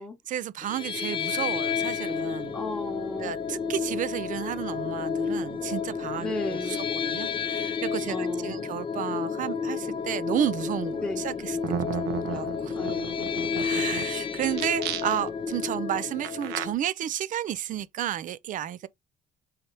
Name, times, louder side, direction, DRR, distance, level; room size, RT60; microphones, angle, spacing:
voice 1, 0.3-2.6 3.2-11.6 11.9-12.0 12.3-12.7 13.5-18.9, right 11 dB, 50° right, 0.5 m, -32 dB
sound 1, 0.6-16.7, left 6 dB, 30° left, 0.7 m, -31 dB
voice 2, 2.5-3.3 6.2-6.8 8.1-8.7 11.0-11.2 12.3-12.4 12.7-13.6, left 1 dB, 5° left, 1.0 m, -35 dB
sound 2, 11.3-11.4 11.6-14.0 14.5-15.4 16.2-16.7, right 8 dB, 85° right, 0.9 m, -33 dB
4.9 x 2.8 x 2.8 m
cardioid pair, 110°, 17 cm